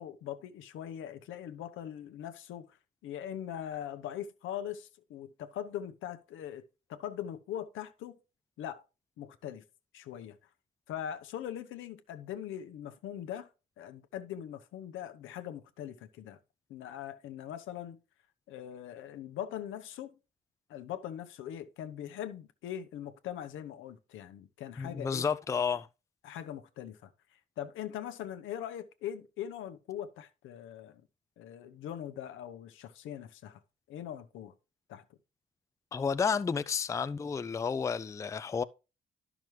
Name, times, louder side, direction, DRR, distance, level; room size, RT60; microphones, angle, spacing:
voice 1, 0.0-2.8 3.0-6.6 6.9-8.2 8.6-8.8 9.2-9.6 9.9-10.4 10.9-13.5 13.8-16.4 16.7-18.0 18.5-20.2 20.7-25.3 26.2-31.0 31.4-33.6 33.9-34.5 34.9-35.0, left 10 dB, 85° left, 0.8 m, -41 dB
voice 2, 24.8-25.9 35.9-38.6, left 6 dB, 15° left, 0.3 m, -31 dB
10.5 x 6.0 x 3.1 m
cardioid pair, 90°, 20 cm